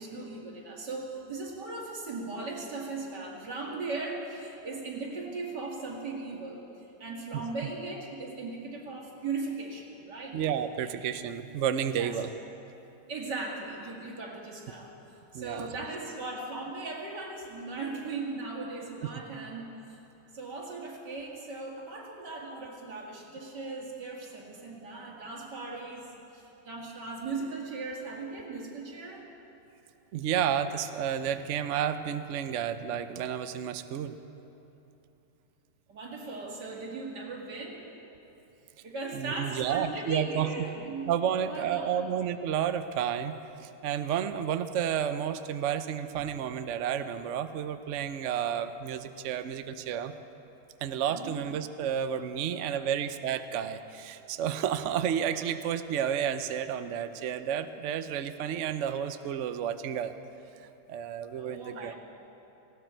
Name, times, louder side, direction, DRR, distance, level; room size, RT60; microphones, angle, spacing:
voice 1, 0.0-6.6 7.0-10.4 12.0-12.1 13.1-14.9 15.3-20.0 20.3-29.3 35.9-37.8 38.8-42.0 51.1-51.4 61.4-62.0, right 3 dB, 85° right, -2 dB, 2.8 m, -38 dB
voice 2, 10.3-12.3 15.3-15.7 30.1-34.2 39.1-40.5 40.8-43.3 43.8-50.1 50.8-60.1 60.6-62.0, right 9 dB, 60° right, 10 dB, 0.8 m, -31 dB
19.0 x 17.0 x 4.5 m, 2.9 s
omnidirectional pair, 1.8 m